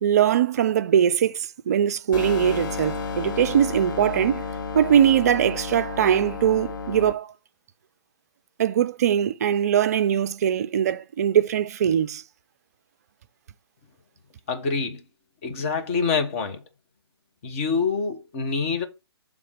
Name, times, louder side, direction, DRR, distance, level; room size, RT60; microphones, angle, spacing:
voice 1, 0.0-4.4 4.7-7.3 8.6-12.2, right 9 dB, 35° right, 0.4 m, -21 dB
sound 1, 2.1-7.1, left 5 dB, 50° left, 1.0 m, -32 dB
voice 2, 14.5-15.0 15.4-16.6 17.4-18.8, left 5 dB, 30° left, 1.3 m, -26 dB
6.9 x 3.6 x 5.2 m
figure-of-eight pair, 135°, 14 cm